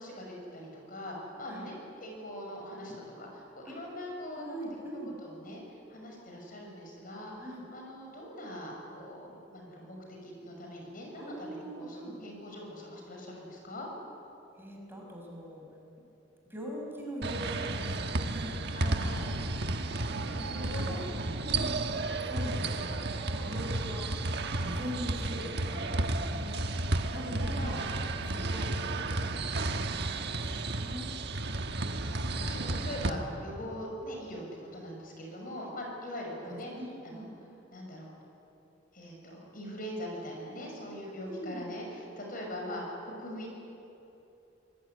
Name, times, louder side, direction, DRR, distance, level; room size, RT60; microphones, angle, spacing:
voice 1, 0.0-1.7 2.0-4.6 4.9-13.9 18.7-19.3 20.3-21.5 21.8-22.1 27.5-27.8 28.2-28.5 32.4-34.4 34.7-36.7 37.0-37.2 37.7-38.1 38.9-43.5, equal, 50° left, 0 dB, 6.6 m, -42 dB
voice 2, 4.4-5.1 7.4-7.6 11.2-12.1 14.6-15.6 16.5-18.6 20.2-21.8 22.2-23.0 23.3-24.1 24.6-26.7 27.1-27.9 28.3-29.2 30.2-31.2 32.7-33.3 36.4-37.3 41.2-41.6, equal, 10° right, -1 dB, 6.0 m, -42 dB
sound 1, 17.2-33.1, right 2 dB, 60° right, 1.4 m, -32 dB
26.0 x 20.5 x 9.6 m, 2.9 s
head